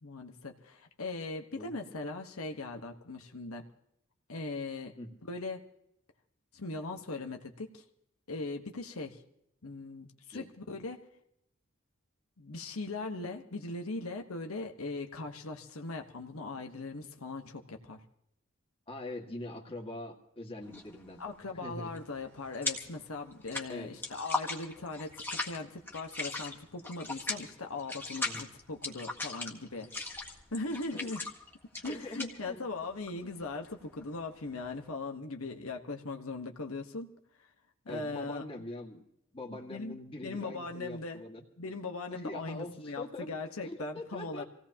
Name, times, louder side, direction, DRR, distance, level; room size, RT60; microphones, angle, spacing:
voice 1, 0.0-3.6 4.3-4.9 5.3-5.6 6.5-7.8 8.3-9.2 9.6-11.0 12.4-18.0 21.2-25.1 25.4-31.2 31.8-37.1 37.8-38.4 39.7-41.2 41.6-44.4, left 3 dB, 90° left, 4 dB, 1.3 m, -39 dB
voice 2, 18.9-21.9 23.7-23.9 28.2-28.4 30.9-31.1 31.7-32.6 37.9-39.0 39.3-41.4 42.1-43.3 43.6-44.4, left 2 dB, 25° left, 0 dB, 2.0 m, -43 dB
sound 1, 20.6-21.0 21.3-23.0 23.3-34.8, left 2 dB, 10° left, 1.7 m, -38 dB
26.0 x 17.0 x 2.9 m, 0.75 s
head